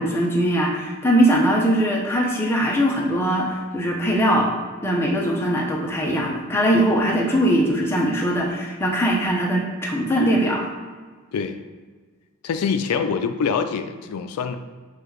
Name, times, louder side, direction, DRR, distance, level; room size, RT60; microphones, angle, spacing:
voice 1, 0.0-4.5 4.8-10.7, equal, 10° left, -3 dB, 0.6 m, -21 dB
voice 2, 12.4-14.6, left 6 dB, 85° left, 8 dB, 0.3 m, -24 dB
6.6 x 2.3 x 3.1 m, 1.4 s
head